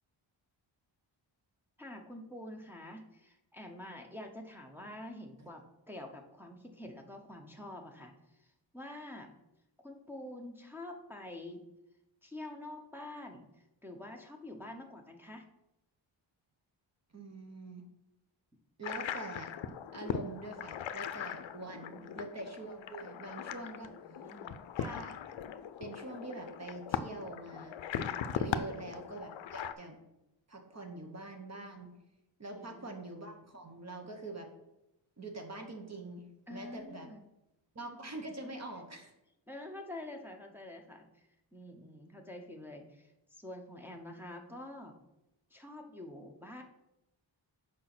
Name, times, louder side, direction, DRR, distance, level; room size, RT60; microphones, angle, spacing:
voice 1, 1.8-8.1 8.4-8.5 8.7-9.3 9.8-11.7 12.2-13.5 13.8-15.4 21.9-22.2 23.8-24.6 32.5-33.0 36.5-37.2 39.5-45.0 45.5-46.6, left 1 dB, 5° right, 1 dB, 0.8 m, -47 dB
voice 2, 17.1-17.8 18.8-19.5 19.9-23.9 24.8-25.2 25.8-27.8 28.3-30.0 30.5-31.9 32.4-34.5 35.2-36.2 36.5-37.1 37.7-39.1, right 2 dB, 35° right, 3 dB, 1.1 m, -44 dB
sound 1, 18.8-29.7, left 8 dB, 75° left, 0.6 m, -39 dB
6.4 x 5.2 x 6.0 m, 0.90 s
wide cardioid pair, 140°, 47 cm